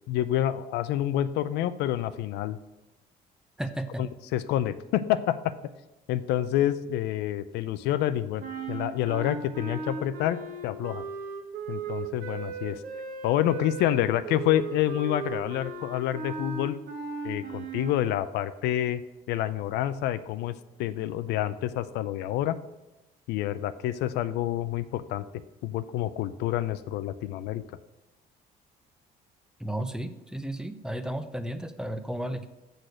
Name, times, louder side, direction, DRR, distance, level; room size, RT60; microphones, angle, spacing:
voice 1, 0.1-2.6 4.0-5.5 6.1-11.0 11.7-12.8 13.2-16.8 17.2-19.0 19.3-22.6 23.3-25.3 25.6-27.6, left 12 dB, 85° left, 13 dB, 0.5 m, -28 dB
voice 2, 3.6-4.0 29.6-32.5, right 1 dB, 5° right, 10 dB, 0.6 m, -33 dB
sound 1, 8.4-18.0, right 4 dB, 75° right, 1.5 m, -37 dB
6.6 x 6.4 x 6.3 m, 1.0 s
cardioid pair, 110°, 17 cm